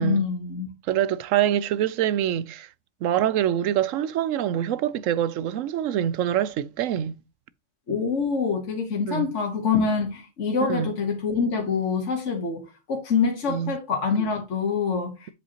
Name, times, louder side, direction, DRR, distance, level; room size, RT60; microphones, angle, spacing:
voice 1, 0.0-0.7 7.9-15.3, left 5 dB, 65° left, 1.6 m, -25 dB
voice 2, 0.9-2.7 3.0-7.1 9.1-9.2 10.7-10.9 13.5-13.8, right 10 dB, 75° right, 0.9 m, -25 dB
7.6 x 7.4 x 2.9 m
omnidirectional pair, 1.4 m